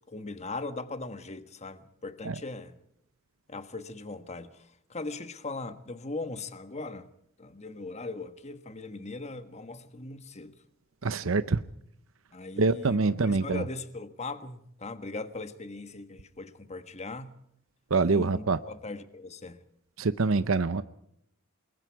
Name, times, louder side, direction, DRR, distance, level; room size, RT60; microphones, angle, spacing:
voice 1, 0.1-2.8 3.5-7.1 7.4-10.5 12.3-17.4 18.1-19.6, left 3 dB, 30° left, 1.5 m, -39 dB
voice 2, 11.0-11.6 12.6-13.6 17.9-18.6 20.0-20.8, right 3 dB, 70° right, 0.7 m, -25 dB
28.5 x 22.5 x 4.8 m
head